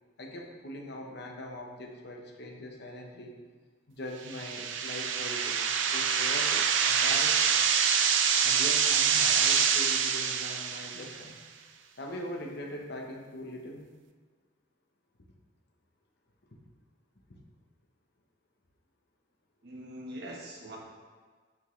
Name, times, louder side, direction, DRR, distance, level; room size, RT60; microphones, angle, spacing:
voice 1, 0.2-3.4 3.9-7.6 8.4-11.4 12.0-13.9 17.3-17.4, left 1 dB, 60° left, 1 dB, 1.0 m, -41 dB
sound 1, 4.3-11.2, right 7 dB, 85° right, 0.5 m, -26 dB
voice 2, 19.6-20.8, right 1 dB, 60° right, -1 dB, 1.4 m, -42 dB
8.9 x 6.1 x 3.2 m, 1.5 s
head